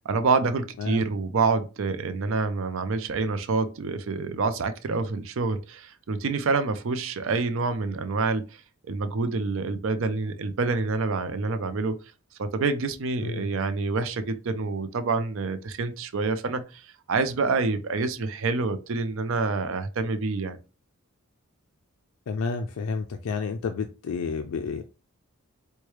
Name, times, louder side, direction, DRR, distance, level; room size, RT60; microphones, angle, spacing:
voice 1, 0.0-8.5 8.9-12.0 12.4-20.6, right 4 dB, 60° right, 0.4 m, -27 dB
voice 2, 22.3-24.8, left 5 dB, 75° left, 0.4 m, -30 dB
4.6 x 2.2 x 3.0 m
head